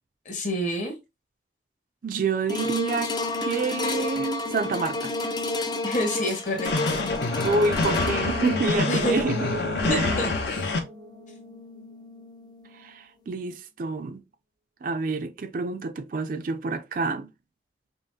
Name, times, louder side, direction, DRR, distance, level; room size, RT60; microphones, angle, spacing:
voice 1, 0.2-0.9 5.8-7.0 8.9-9.2 9.9-10.7, equal, 45° left, 1.3 m, -28 dB
voice 2, 2.0-5.1 7.4-9.4 9.9-10.2 12.7-14.2 14.8-17.3, right 3 dB, 50° right, 0.4 m, -28 dB
sound 1, 2.5-12.9 13.4-13.5, left 2 dB, 25° left, 0.4 m, -32 dB
sound 2, 6.7-10.8, left 3 dB, 65° left, 0.7 m, -27 dB
sound 3, 8.2-11.9 12.2-12.3, equal, 80° right, 0.8 m, -35 dB
5.3 x 2.1 x 2.7 m
head